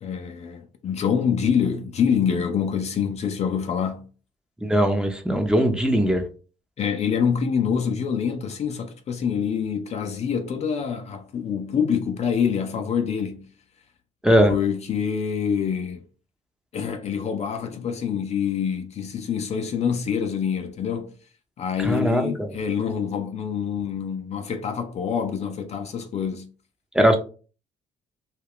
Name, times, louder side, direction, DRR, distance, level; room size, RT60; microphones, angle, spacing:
voice 1, 0.0-4.1 6.8-13.5 14.5-16.0 16.7-21.1 21.6-26.5, left 7 dB, 45° left, 0.5 m, -26 dB
voice 2, 4.6-6.2 14.2-14.5 21.8-22.5 26.9-27.2, equal, 5° right, 0.7 m, -20 dB
2.3 x 2.2 x 3.5 m
hypercardioid pair, 60°, 16 cm